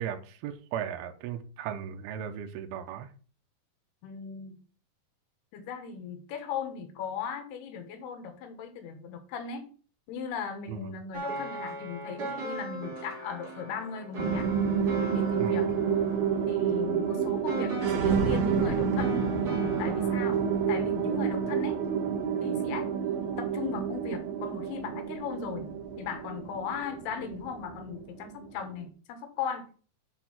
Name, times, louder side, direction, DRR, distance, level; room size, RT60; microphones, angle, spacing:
voice 1, 0.0-3.1 10.7-10.9 15.4-15.6, right 9 dB, 85° right, 2.7 m, -36 dB
voice 2, 4.0-4.6 5.5-9.7 10.1-14.5 15.0-15.7 16.5-19.2 19.8-21.8 22.4-22.9 23.4-25.7 26.0-29.7, left 6 dB, 85° left, 3.3 m, -37 dB
sound 1, 11.1-22.2, right 2 dB, 35° right, 1.6 m, -40 dB
sound 2, 14.2-28.8, right 7 dB, 65° right, 3.7 m, -29 dB
8.3 x 4.5 x 5.9 m
omnidirectional pair, 4.5 m